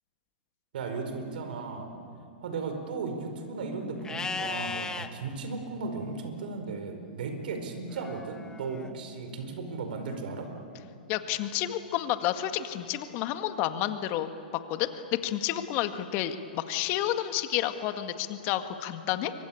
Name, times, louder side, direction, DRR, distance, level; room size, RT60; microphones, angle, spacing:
voice 1, 0.7-1.9 2.4-10.5, right 4 dB, 65° right, 6 dB, 4.7 m, -36 dB
Livestock farm animals working animals, 4.0-5.1 7.9-8.9, left 4 dB, 10° left, 1.4 m, -36 dB
voice 2, 11.1-14.3 14.7-19.3, left 12 dB, 40° left, 8 dB, 1.9 m, -30 dB
29.0 x 24.0 x 8.7 m, 2.6 s
hypercardioid pair, 115°, 5 cm